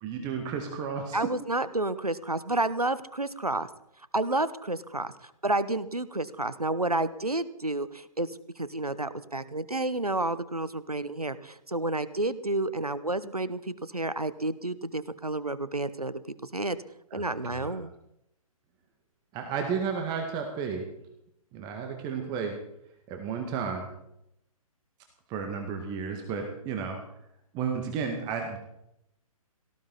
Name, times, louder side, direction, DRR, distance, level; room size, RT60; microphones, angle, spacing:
voice 1, 0.0-1.2 17.1-17.2 17.5-17.8 19.3-20.8 21.5-22.6 23.1-23.9 25.3-27.0 27.5-28.6, right 6 dB, 20° right, 3 dB, 1.9 m, -32 dB
voice 2, 1.1-3.7 4.1-16.8 17.1-17.9, right 2 dB, 90° right, 15 dB, 1.1 m, -30 dB
18.0 x 15.0 x 4.2 m, 0.80 s
figure-of-eight pair, 130°, 19 cm